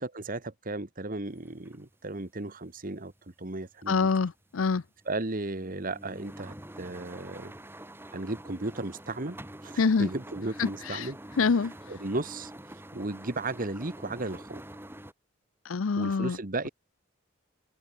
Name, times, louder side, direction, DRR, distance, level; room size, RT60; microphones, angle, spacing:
voice 1, 0.0-3.1 3.4-4.1 5.0-7.5 8.1-11.2 11.5-12.5 12.9-14.6 16.0-16.7, right 2 dB, 45° right, 1.6 m, -35 dB
sound 1, 1.3-3.7 4.0-4.4 4.8-15.1, right 1 dB, 10° right, 2.7 m, -46 dB
voice 2, 3.9-4.8 9.8-10.1 10.6-11.1 11.4-11.7 15.7-16.4, left 5 dB, 90° left, 0.6 m, -25 dB
head